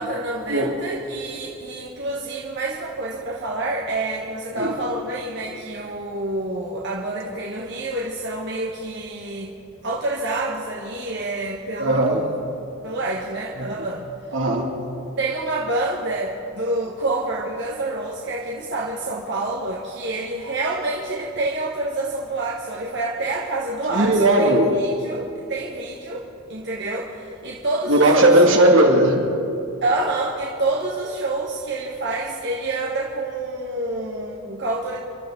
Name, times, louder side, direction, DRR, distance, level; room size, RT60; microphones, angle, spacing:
voice 1, 0.0-9.5 9.8-12.4 12.8-14.4 15.2-28.4 29.8-35.0, right 2 dB, 55° right, -3 dB, 1.4 m, -27 dB
voice 2, 11.8-12.3 13.6-13.7 14.3-14.8 23.9-24.7 27.9-29.3, right 1 dB, 75° right, 0 dB, 2.5 m, -17 dB
29.0 x 12.5 x 3.9 m, 2.8 s
head